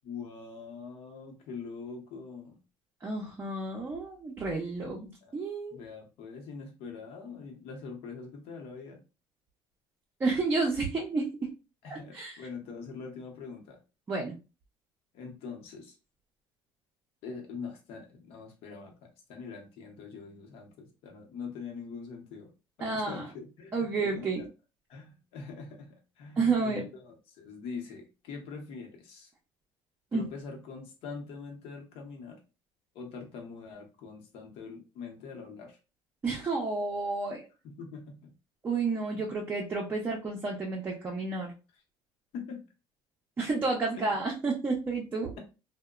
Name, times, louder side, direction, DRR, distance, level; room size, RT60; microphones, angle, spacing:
voice 1, 0.0-2.6 5.2-5.4 5.7-9.0 11.8-13.8 15.1-16.0 17.2-22.5 22.8-24.5 24.9-29.3 30.1-32.4 32.9-35.8 37.6-38.3 39.1-39.2 42.3-42.6 43.9-44.0, left 5 dB, 65° left, 2 dB, 0.8 m, -43 dB
voice 2, 3.0-5.8 10.2-11.5 11.9-12.4 14.1-14.3 22.8-23.2 23.7-24.4 26.4-26.9 30.1-30.2 36.2-37.4 38.6-41.5 43.4-45.3, right 3 dB, 20° right, -2 dB, 0.5 m, -31 dB
2.8 x 2.1 x 2.3 m, 0.31 s
cardioid pair, 135°, 10 cm